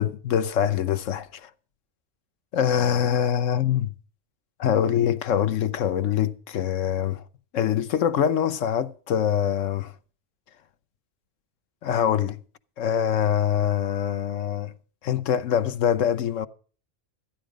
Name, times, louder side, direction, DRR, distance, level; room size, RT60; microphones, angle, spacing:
voice 1, 0.0-1.5 2.5-3.9 4.6-7.2 7.5-9.9 11.8-12.4 12.8-14.7 15.0-16.5, left 9 dB, 85° left, 1.2 m, -24 dB
14.5 x 10.5 x 5.0 m
omnidirectional pair, 1.3 m